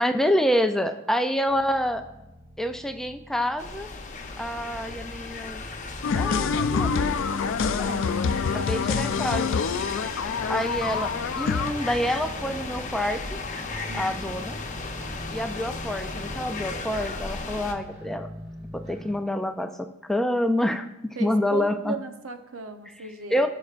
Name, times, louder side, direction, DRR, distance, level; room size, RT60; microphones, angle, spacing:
voice 1, 0.0-2.0 2.6-3.9 4.4-5.6 6.1-8.0 8.5-9.6 10.5-13.4 13.9-14.6 15.3-18.3 18.7-22.0 23.0-23.5, equal, ahead, 6 dB, 0.4 m, -27 dB
sound 1, 1.5-19.1, equal, 35° right, 3.3 m, -44 dB
sound 2, 3.6-17.7, left 3 dB, 40° left, 0.9 m, -36 dB
sound 3, 6.0-11.7, left 5 dB, 65° left, 0.4 m, -26 dB
voice 2, 21.2-23.5, right 4 dB, 75° right, 7 dB, 0.8 m, -36 dB
16.5 x 6.2 x 2.5 m, 0.94 s
head